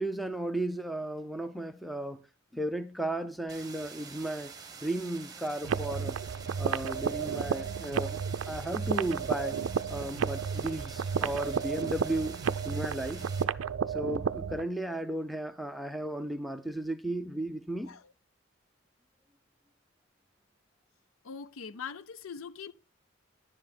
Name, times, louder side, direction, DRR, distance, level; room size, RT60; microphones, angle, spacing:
voice 1, 0.0-2.2 2.5-4.5 4.8-6.2 6.6-9.6 9.9-12.4 12.6-13.3 13.9-17.9, right 1 dB, ahead, 0.6 m, -35 dB
sound 1, 3.5-13.4, right 5 dB, 20° right, 1.2 m, -47 dB
sound 2, 5.6-14.7, right 6 dB, 75° right, 0.4 m, -32 dB
voice 2, 21.2-22.7, left 6 dB, 80° left, 0.5 m, -42 dB
11.0 x 7.5 x 4.3 m
head